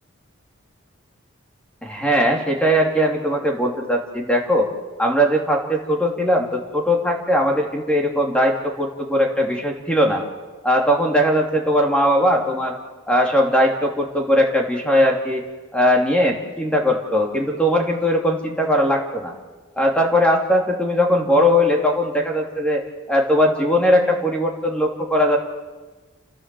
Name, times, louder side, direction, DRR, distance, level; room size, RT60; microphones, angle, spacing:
voice 1, 1.8-4.7 5.0-10.2 10.6-12.8 13.1-15.4 15.7-19.3 19.8-22.8 23.1-25.4, equal, 5° left, 1 dB, 2.9 m, -19 dB
29.0 x 15.5 x 7.8 m, 1.3 s
head